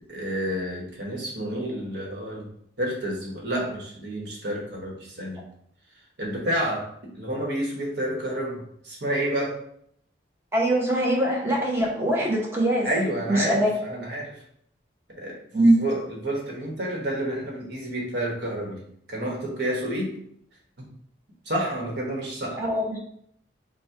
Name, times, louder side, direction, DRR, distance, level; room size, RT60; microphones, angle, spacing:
voice 1, 0.1-2.5 2.8-5.4 6.2-9.6 12.8-14.4 15.2-20.2 20.8-20.9 21.4-22.6, right 1 dB, 60° right, -2 dB, 1.2 m, -30 dB
voice 2, 10.5-12.9 13.3-13.7 15.5-15.8 22.6-23.0, right 1 dB, 15° right, -3 dB, 0.9 m, -22 dB
4.2 x 2.2 x 4.4 m, 0.68 s
head